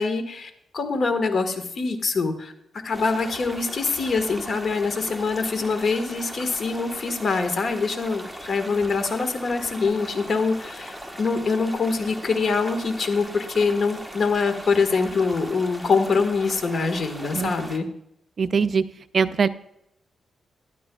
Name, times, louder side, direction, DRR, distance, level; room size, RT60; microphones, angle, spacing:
voice 1, 0.0-2.5 2.8-17.9, left 4 dB, 50° left, 7 dB, 1.6 m, -24 dB
sound 1, 2.9-17.8, equal, ahead, 1.2 m, -39 dB
voice 2, 18.4-18.8 19.1-19.5, right 5 dB, 50° right, 13 dB, 0.4 m, -21 dB
14.0 x 11.5 x 2.4 m, 0.76 s
cardioid pair, 100°, 0 cm